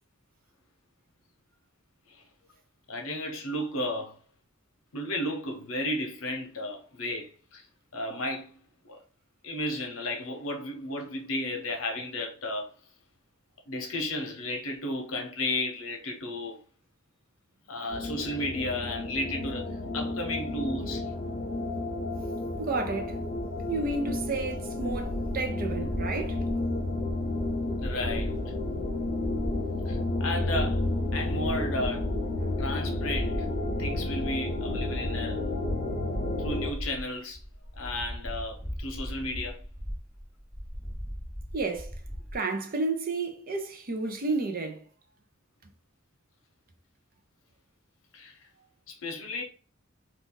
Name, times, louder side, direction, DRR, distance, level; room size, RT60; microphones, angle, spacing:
voice 1, 2.9-4.1 4.9-7.7 7.9-8.6 8.8-9.0 9.4-12.7 13.7-16.6 17.7-21.1 27.8-28.3 29.9-32.1 32.6-33.5 33.8-35.4 36.4-37.4 37.7-39.6 48.1-48.5 48.9-49.4, left 1 dB, 75° left, 0.9 m, -33 dB
sound 1, 17.9-36.7, left 2 dB, 45° left, 0.4 m, -32 dB
voice 2, 21.4-21.8 22.6-23.2 23.7-26.4 41.5-41.9 42.3-44.8, right 3 dB, 45° right, 0.6 m, -31 dB
sound 2, 22.6-42.3, equal, 15° right, 0.9 m, -38 dB
2.6 x 2.4 x 3.7 m
head